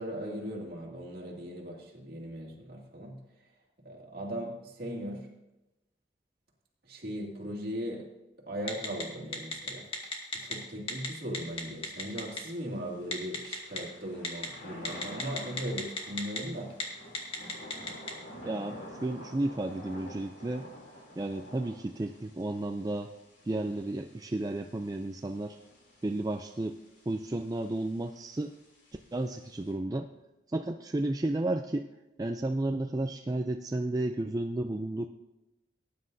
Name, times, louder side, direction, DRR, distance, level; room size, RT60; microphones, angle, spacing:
voice 1, 0.0-3.5 3.8-5.3 6.8-8.1 8.4-9.9 10.3-16.7, equal, 55° right, -2 dB, 2.5 m, -38 dB
Telephone, 8.7-9.0 9.3-10.5 10.9-11.1 11.3-12.4 13.1-13.8 14.2-14.5 14.8-16.4 16.7-16.8 17.1-18.1, left 3 dB, 30° left, 1.8 m, -33 dB
Thunder / Rain, 11.5-29.7, equal, 90° left, 3.1 m, -50 dB
voice 2, 18.4-20.7 21.2-23.1 23.5-25.6 26.0-26.8 27.1-28.5 29.1-30.1 30.5-31.9 32.2-35.1, right 2 dB, 20° right, 5 dB, 0.4 m, -32 dB
18.0 x 9.7 x 2.7 m, 0.97 s
head